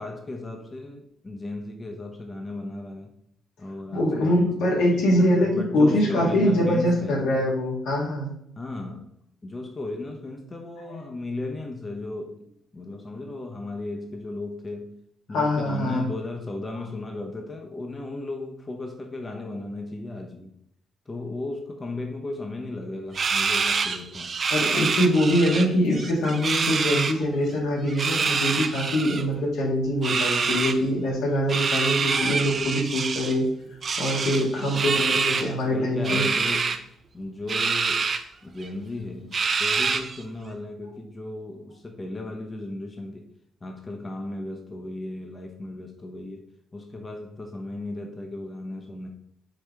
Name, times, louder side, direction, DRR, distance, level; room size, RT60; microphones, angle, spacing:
voice 1, 0.0-3.1 3.6-7.2 8.6-9.1 9.4-12.4 12.7-14.9 15.3-20.5 21.1-24.3 34.6-36.8 37.1-38.1 38.4-43.3 43.6-49.1, left 2 dB, 25° left, 0.6 m, -35 dB
voice 2, 3.9-8.3 10.9-11.0 15.3-16.1 24.5-33.5 34.0-36.2, equal, 85° left, 1.4 m, -23 dB
sound 1, 23.1-25.7 25.9-27.1 27.9-29.2 30.0-30.8 31.5-33.4 33.8-35.5 36.0-36.8 37.5-38.2 38.6-38.7 39.3-40.2, right 5 dB, 45° right, 0.4 m, -26 dB
4.8 x 3.1 x 3.4 m
cardioid pair, 90°, 0 cm